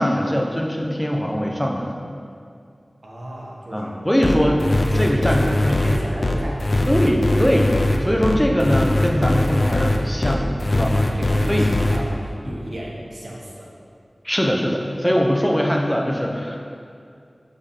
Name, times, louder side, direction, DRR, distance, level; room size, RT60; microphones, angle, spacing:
voice 1, 0.0-1.9 3.7-4.6 5.0-5.8 6.9-11.1 11.5-11.7 12.4-12.6 14.2-16.6, equal, 5° left, 0 dB, 0.8 m, -21 dB
voice 2, 3.0-3.9 4.4-5.2 5.7-6.6 10.9-13.7, right 1 dB, 75° right, -4 dB, 1.3 m, -34 dB
sound 1, 4.2-12.0, left 1 dB, 65° left, 0.6 m, -20 dB
6.9 x 4.9 x 4.4 m, 2.4 s
wide cardioid pair, 55°, 0 cm